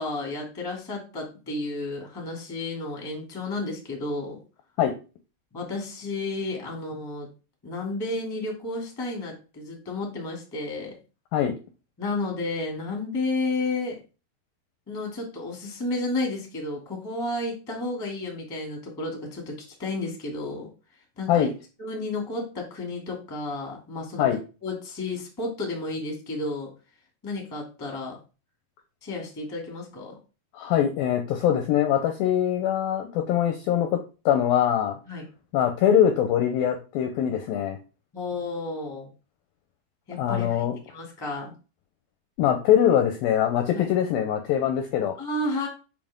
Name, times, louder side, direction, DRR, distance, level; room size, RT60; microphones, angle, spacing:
voice 1, 0.0-4.4 5.5-7.3 7.6-10.9 12.0-14.0 14.9-20.7 21.2-21.5 21.8-24.2 24.6-26.7 27.2-28.2 29.0-30.2 35.0-35.2 38.1-39.1 40.1-41.5 43.7-43.9 45.2-45.7, left 2 dB, 10° left, 0 dB, 1.1 m, -32 dB
voice 2, 30.5-34.0 34.3-35.0 35.5-37.8 40.2-40.8 42.4-45.2, left 10 dB, 80° left, 6 dB, 2.1 m, -23 dB
7.5 x 5.3 x 3.6 m, 0.32 s
omnidirectional pair, 5.0 m